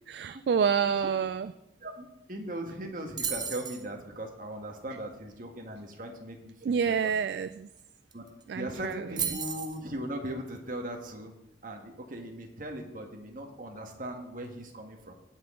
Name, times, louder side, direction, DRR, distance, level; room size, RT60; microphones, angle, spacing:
voice 1, 0.1-1.5 6.6-7.7 8.5-9.4, right 6 dB, 65° right, 13 dB, 0.3 m, -28 dB
voice 2, 1.8-7.1 8.1-8.3 8.5-11.3 11.6-15.1, right 1 dB, 50° right, 3 dB, 1.5 m, -39 dB
sound 1, 3.2-3.8 7.8-7.9 8.1-8.4 9.2-9.8, right 7 dB, 25° right, 0.8 m, -33 dB
18.0 x 6.0 x 3.7 m, 0.88 s
head